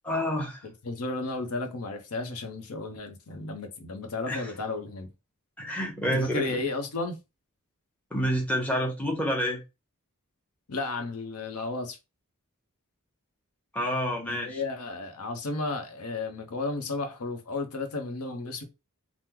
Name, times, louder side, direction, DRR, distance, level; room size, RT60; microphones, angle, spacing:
voice 1, 0.0-0.6 4.3-4.5 5.6-6.6 8.1-9.6 13.7-14.6, equal, 5° left, 0.9 m, -28 dB
voice 2, 0.6-5.1 6.0-7.2 10.7-12.0 14.3-18.6, left 3 dB, 85° left, 0.7 m, -33 dB
2.9 x 2.0 x 3.6 m
head